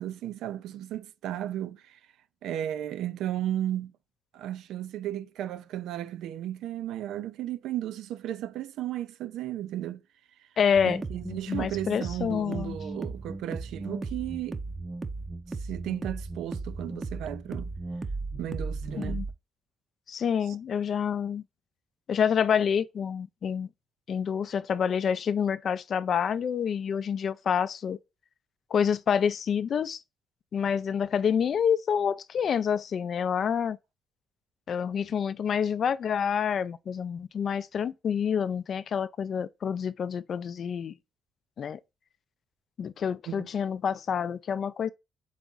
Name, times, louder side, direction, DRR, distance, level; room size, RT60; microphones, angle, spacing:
voice 1, 0.0-2.0 2.4-3.9 4.3-10.0 10.8-14.6 15.6-17.7 18.4-19.2 20.5-20.6 43.3-43.5, right 12 dB, 85° right, 0.4 m, -34 dB
voice 2, 10.6-12.8 19.0-19.2 20.1-21.4 22.1-23.7 24.1-28.0 28.7-30.0 30.5-33.8 34.7-40.9 41.6-41.8 42.8-44.9, left 7 dB, 55° left, 0.4 m, -28 dB
sound 1, 10.7-19.3, right 3 dB, 25° right, 0.5 m, -36 dB
4.1 x 3.5 x 3.7 m
cardioid pair, 90°, 0 cm